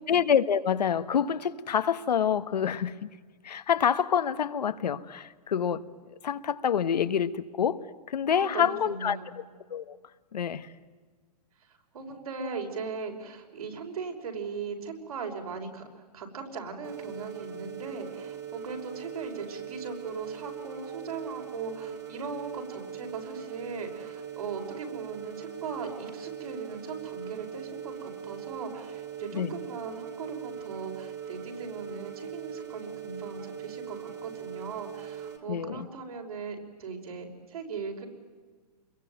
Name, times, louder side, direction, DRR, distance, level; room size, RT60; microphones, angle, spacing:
voice 1, 0.1-3.1 3.4-5.9 6.2-9.2 9.7-10.0 10.3-10.7 29.3-29.6 35.5-35.9, left 8 dB, 80° left, 1.4 m, -27 dB
voice 2, 8.3-9.3 11.7-15.8 16.1-38.1, right 5 dB, 60° right, 5.5 m, -39 dB
sound 1, 16.8-35.4, right 8 dB, 15° right, 2.4 m, -41 dB
27.0 x 22.0 x 9.2 m
hypercardioid pair, 175°, 21 cm